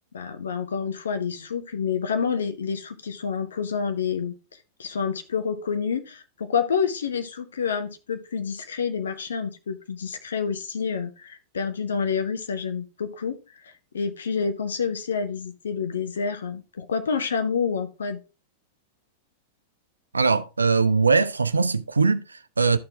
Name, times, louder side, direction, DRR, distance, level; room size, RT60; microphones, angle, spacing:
voice 1, 0.1-4.3 4.8-13.4 13.6-18.2, left 6 dB, 65° left, 1.0 m, -28 dB
voice 2, 20.1-22.8, right 4 dB, 80° right, 0.4 m, -21 dB
12.5 x 4.5 x 3.4 m
figure-of-eight pair, 90°, 0 cm